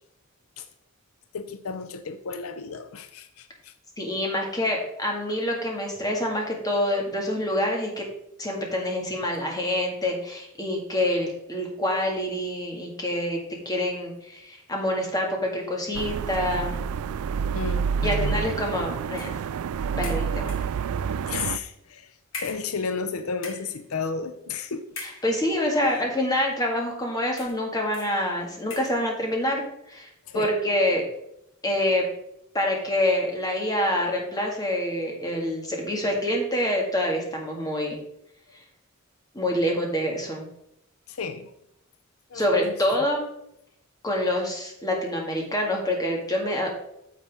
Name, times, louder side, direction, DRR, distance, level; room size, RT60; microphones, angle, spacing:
voice 1, 1.3-3.7 17.5-18.5 18.8-18.9 21.3-22.1 22.3-24.9 30.3-30.5 41.1-41.5 42.3-43.0, left 5 dB, 80° left, 10 dB, 0.6 m, -33 dB
voice 2, 4.0-8.0 8.4-16.8 18.0-19.3 19.9-20.5 25.0-29.6 29.9-30.1 30.3-31.0 31.6-32.0 32.5-38.0 39.3-40.5 42.3-43.2 44.0-46.7, left 1 dB, 15° left, 0 dB, 1.9 m, -26 dB
sound 1, 15.9-21.6, right 6 dB, 80° right, 0.3 m, -28 dB
sound 2, 19.2-19.4 20.0-20.8 21.6-21.8 22.3-23.1 23.3-23.8 24.9-25.6 26.4-26.5 27.3-27.7 27.9-28.2 28.7-29.0, left 4 dB, 60° left, 1.9 m, -41 dB
9.5 x 7.2 x 3.5 m, 0.79 s
head